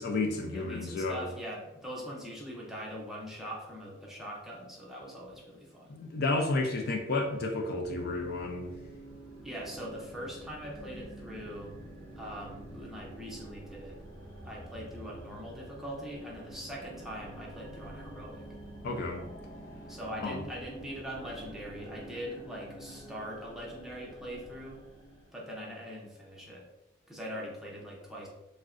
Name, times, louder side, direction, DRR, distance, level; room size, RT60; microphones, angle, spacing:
voice 1, 0.0-1.3 5.9-8.7 18.8-19.3 20.2-20.4, left 2 dB, 50° left, 2 dB, 0.3 m, -31 dB
voice 2, 0.5-6.0 9.4-11.7 12.2-14.0 14.4-18.4 19.9-24.8 25.3-26.6 27.1-28.3, equal, ahead, -4 dB, 0.5 m, -42 dB
sound 1, 7.8-25.3, right 1 dB, 25° left, 0.9 m, -48 dB
3.5 x 2.1 x 2.4 m, 0.97 s
head